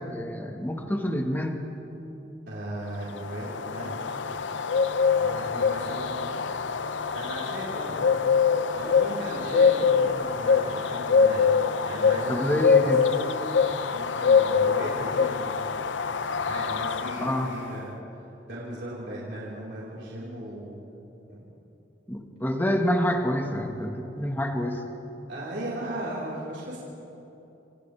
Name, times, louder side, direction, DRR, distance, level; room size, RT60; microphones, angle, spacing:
voice 1, 0.1-1.6 12.3-13.0 17.2-17.5 22.1-24.8, equal, 10° left, 3 dB, 1.7 m, -27 dB
voice 2, 2.5-4.1 5.2-6.4 7.1-8.2 8.7-13.4 13.9-15.6 16.4-18.0 18.4-20.8 21.3-21.4 25.3-26.8, right 1 dB, 70° right, -8 dB, 4.6 m, -37 dB
sound 1, 3.1-17.7, left 5 dB, 85° left, 0.7 m, -24 dB
29.0 x 26.5 x 3.5 m, 3.0 s
head